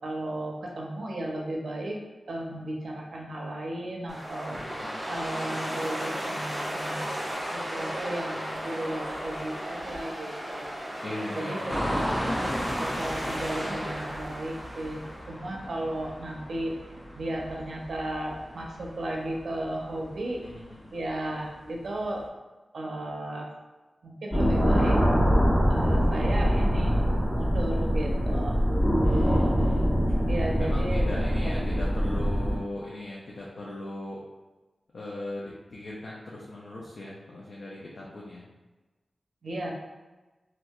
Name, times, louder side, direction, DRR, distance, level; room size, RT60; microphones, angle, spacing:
voice 1, 0.0-2.0 2.3-4.6 5.1-7.2 7.5-10.7 11.4-12.0 12.8-16.7 17.2-20.4 20.9-22.2 22.7-23.5 24.0-25.0 25.7-27.0 27.3-28.6 30.3-31.1 31.7-31.9 39.4-39.7, right 1 dB, 75° right, -1 dB, 0.5 m, -34 dB
sound 1, 4.1-15.3, equal, 10° right, 0.8 m, -35 dB
voice 2, 4.5-5.0 11.0-11.9 20.4-20.9 29.0-29.9 30.6-34.2 34.9-38.5, left 1 dB, 70° left, -6 dB, 0.4 m, -39 dB
sound 2, 11.7-22.2, equal, 5° left, 0.4 m, -36 dB
sound 3, 24.3-32.6, equal, 45° left, 1.2 m, -23 dB
2.7 x 2.2 x 2.3 m, 1.2 s
wide cardioid pair, 85°, 0 cm